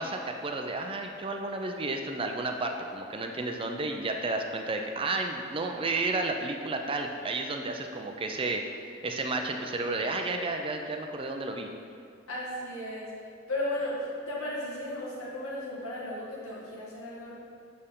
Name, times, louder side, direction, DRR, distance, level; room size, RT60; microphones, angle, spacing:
voice 1, 0.0-8.6 9.0-11.7, right 2 dB, 25° right, 4 dB, 0.4 m, -32 dB
voice 2, 12.3-13.1 13.5-14.0 14.3-17.3, left 1 dB, 85° left, -6 dB, 1.7 m, -35 dB
6.7 x 6.6 x 3.6 m, 2.3 s
head